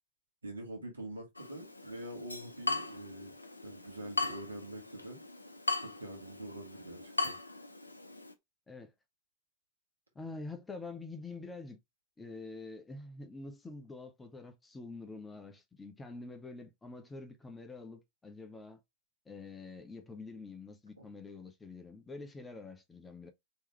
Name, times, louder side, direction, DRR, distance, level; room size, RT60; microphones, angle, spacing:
voice 1, 0.4-3.4 3.6-5.2 5.8-7.3 21.0-21.1, right 1 dB, 75° right, 1.4 m, -45 dB
Water tap faucet / Drip, 1.4-8.3, left 3 dB, 85° left, 0.5 m, -39 dB
voice 2, 10.1-11.8 12.2-18.8 19.3-23.3, left 3 dB, 10° left, 0.7 m, -46 dB
3.4 x 3.1 x 3.1 m
figure-of-eight pair, 90°, 0 cm